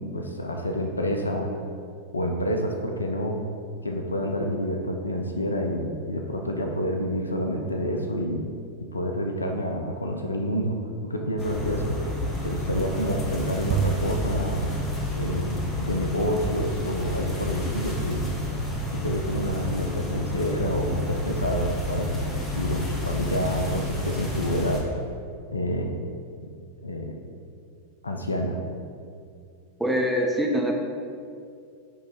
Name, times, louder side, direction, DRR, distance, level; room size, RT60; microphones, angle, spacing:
voice 1, 0.0-1.5 2.1-3.4 3.8-8.5 8.9-12.0 12.4-14.7 15.1-18.3 19.0-24.8 25.5-25.9 26.8-27.2 28.0-28.6, equal, 80° left, 3 dB, 0.6 m, -28 dB
sound 1, 11.4-24.8, left 1 dB, 20° left, 1.2 m, -30 dB
sound 2, 13.2-17.6, right 6 dB, 40° right, 0.5 m, -34 dB
voice 2, 29.8-30.7, equal, 5° right, 0 dB, 0.8 m, -24 dB
8.8 x 3.2 x 3.9 m, 2.3 s
figure-of-eight pair, 90°, 0 cm